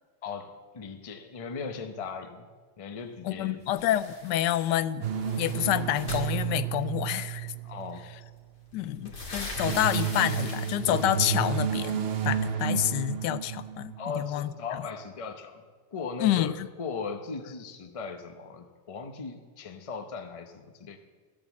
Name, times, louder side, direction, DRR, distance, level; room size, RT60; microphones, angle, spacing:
voice 1, 0.2-2.5 2.8-3.6 7.6-8.3 14.0-15.6 15.9-21.0, left 5 dB, 30° left, 7 dB, 0.6 m, -38 dB
voice 2, 3.2-5.1 5.4-7.5 8.7-14.5 16.2-16.7, left 12 dB, 85° left, 14 dB, 1.2 m, -28 dB
sound 1, 3.7-4.8 5.0-7.0 8.0-8.1 8.4-11.2, left 2 dB, 70° left, 2.9 m, -41 dB
sound 2, 5.0-8.4 9.3-14.1, right 8 dB, 50° right, 0.7 m, -31 dB
14.0 x 8.5 x 7.2 m, 1.4 s
omnidirectional pair, 1.8 m